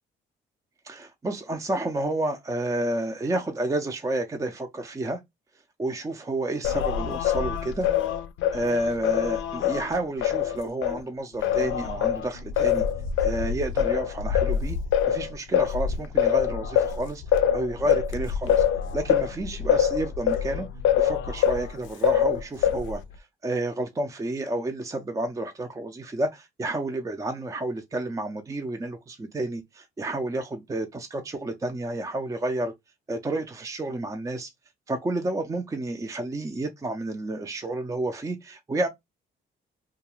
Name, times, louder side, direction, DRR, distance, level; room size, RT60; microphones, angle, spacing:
voice 1, 0.8-5.2 5.8-7.9 8.5-12.8 13.2-14.8 15.1-17.2 17.5-18.6 18.9-20.7 21.0-32.7 33.1-34.5 34.9-38.9, right 2 dB, 15° right, 0.4 m, -30 dB
Singing, 6.6-11.0 11.4-21.7 22.0-23.0, left 9 dB, 75° left, 0.4 m, -25 dB
2.3 x 2.2 x 2.9 m
cardioid pair, 90°, 20 cm